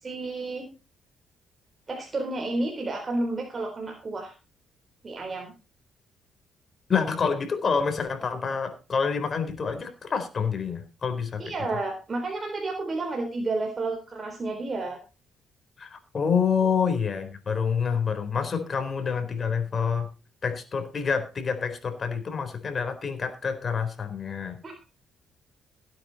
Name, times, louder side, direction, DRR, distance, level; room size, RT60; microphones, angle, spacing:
voice 1, 0.0-0.7 1.9-4.3 5.0-5.5 11.4-15.0 24.6-24.8, right 2 dB, 35° right, 2 dB, 3.9 m, -31 dB
voice 2, 6.9-11.5 15.8-20.1 20.4-24.6, left 6 dB, 40° left, 7 dB, 4.1 m, -27 dB
17.0 x 9.6 x 4.2 m, 0.32 s
cardioid pair, 90°, 0 cm